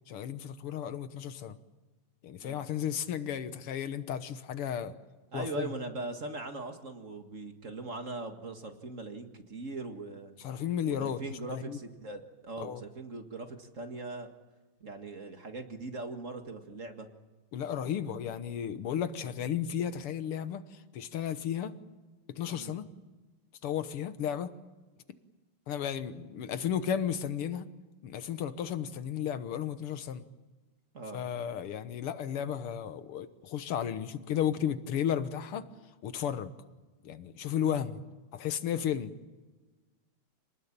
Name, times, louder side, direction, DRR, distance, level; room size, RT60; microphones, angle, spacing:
voice 1, 0.1-1.6 2.2-5.0 5.3-5.7 10.4-11.2 11.5-11.8 12.6-12.8 17.5-21.8 22.3-22.9 23.6-24.6 25.7-27.7 28.0-30.2 31.1-35.7 36.0-36.5 37.0-38.0 38.3-39.1, left 9 dB, 90° left, 11 dB, 2.1 m, -34 dB
voice 2, 5.3-10.3 10.9-14.3 14.8-17.1 22.5-22.8 30.9-31.2, right 2 dB, 40° right, 6 dB, 2.0 m, -40 dB
27.5 x 19.5 x 8.8 m, 1.2 s
omnidirectional pair, 2.4 m